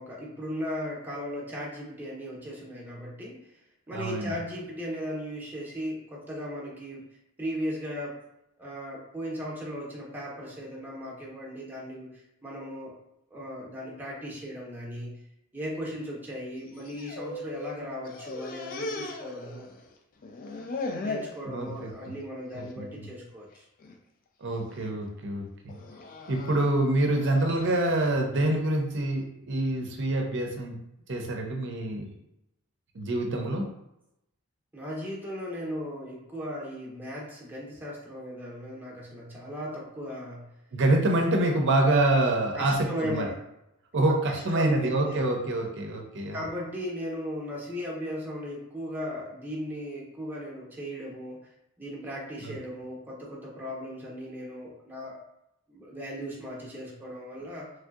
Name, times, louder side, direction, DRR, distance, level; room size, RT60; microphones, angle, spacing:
voice 1, 0.0-3.6 3.9-7.1 7.4-8.2 8.6-12.9 13.3-15.2 15.5-19.7 21.0-23.7 34.7-40.5 42.5-43.4 43.9-45.2 46.3-55.2 55.7-57.7, equal, 10° right, -4 dB, 0.7 m, -37 dB
voice 2, 3.9-4.3 21.5-22.1 22.5-23.1 24.4-25.8 26.3-30.8 31.1-32.1 32.9-33.6 40.7-43.3 43.9-46.4 52.4-52.5, right 2 dB, 55° right, 2 dB, 0.6 m, -26 dB
sound 1, 16.7-17.8 18.0-19.9 20.2-21.4 21.8-22.2 22.5-22.7 23.6-24.0 24.5-24.9 25.7-27.9, left 2 dB, 40° left, 0.3 m, -38 dB
3.2 x 2.7 x 2.4 m, 0.83 s
head